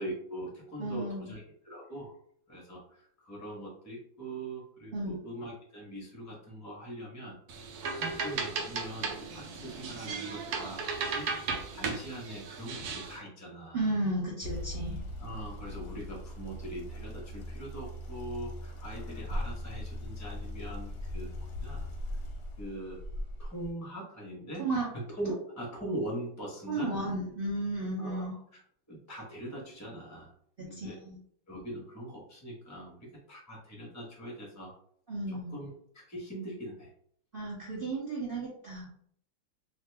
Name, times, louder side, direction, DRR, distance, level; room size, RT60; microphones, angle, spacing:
voice 1, 0.0-2.1 2.5-7.7 8.0-13.9 15.2-22.2 22.6-23.0 23.4-24.7 24.9-26.9 28.0-28.3 28.5-28.6 28.9-30.3 30.6-31.0 31.5-34.7 35.3-36.9, right 1 dB, 15° left, -2 dB, 0.5 m, -42 dB
voice 2, 0.8-1.3 4.9-5.2 13.7-15.0 24.6-24.9 26.7-28.3 30.6-31.2 35.1-35.6 37.3-38.9, right 2 dB, 50° right, -5 dB, 0.6 m, -33 dB
sound 1, 7.5-13.2, right 4 dB, 70° right, 1.0 m, -36 dB
sound 2, 14.4-23.7, left 1 dB, 70° left, 1.0 m, -39 dB
2.9 x 2.5 x 3.3 m, 0.62 s
omnidirectional pair, 2.1 m